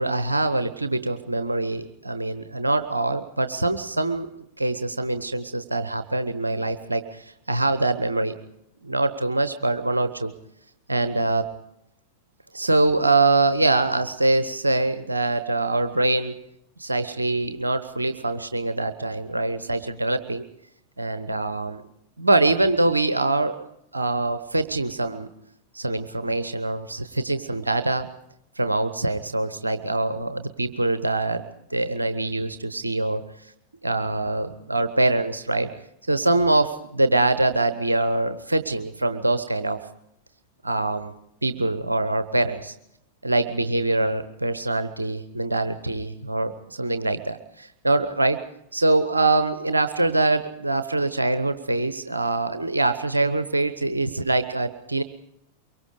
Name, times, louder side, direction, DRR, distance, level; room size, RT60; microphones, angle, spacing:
voice 1, 0.0-4.3 4.6-8.4 8.8-10.3 10.9-11.5 12.5-16.4 16.8-20.4 21.0-21.8 22.2-23.6 23.9-25.3 25.7-28.1 28.6-31.4 31.7-33.2 33.8-35.7 36.1-39.8 40.6-41.1 41.4-42.8 43.2-48.4 48.7-55.0, right 2 dB, 80° right, 11 dB, 0.9 m, -24 dB
24.0 x 23.0 x 5.1 m, 0.78 s
figure-of-eight pair, 90°, 0 cm